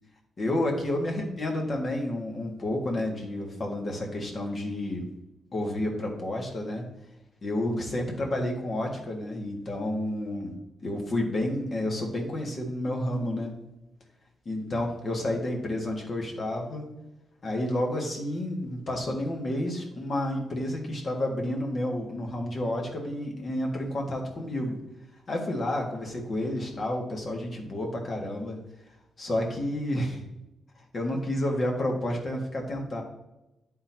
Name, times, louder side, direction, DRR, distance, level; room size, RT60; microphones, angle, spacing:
voice 1, 0.4-5.1 5.5-6.9 7.4-10.5 10.8-13.6 14.5-16.9 17.4-24.8 25.3-28.6 29.2-30.3 30.9-33.0, left 1 dB, 40° left, 0 dB, 1.7 m, -30 dB
11.0 x 3.9 x 2.9 m, 0.94 s
cardioid pair, 115°, 0 cm